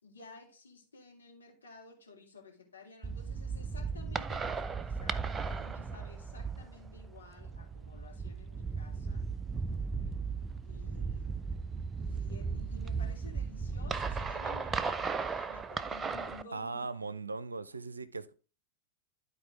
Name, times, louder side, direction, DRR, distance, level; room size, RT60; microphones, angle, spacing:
voice 1, 0.0-9.3 10.6-11.4 12.0-16.9, left 3 dB, 75° left, 2.3 m, -53 dB
Distant gun shots with wind noise, 3.0-16.4, right 5 dB, 20° right, 0.4 m, -36 dB
voice 2, 16.5-18.3, right 4 dB, 80° right, 0.5 m, -39 dB
12.0 x 4.2 x 3.4 m
figure-of-eight pair, 90°, 0 cm